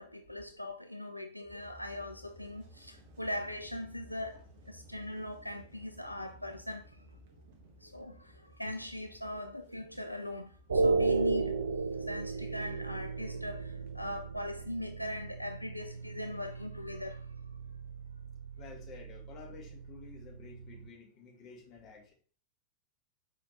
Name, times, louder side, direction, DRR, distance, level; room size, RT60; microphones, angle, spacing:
voice 1, 0.0-6.8 7.8-11.5 11.9-17.3, left 1 dB, 90° left, 0.3 m, -40 dB
sound 1, 1.4-14.3, equal, 50° right, 1.1 m, -57 dB
sound 2, 10.7-20.9, right 3 dB, 70° right, 0.3 m, -35 dB
voice 2, 18.5-22.1, left 5 dB, 35° left, 1.6 m, -51 dB
4.9 x 3.6 x 2.8 m
figure-of-eight pair, 90°, 0 cm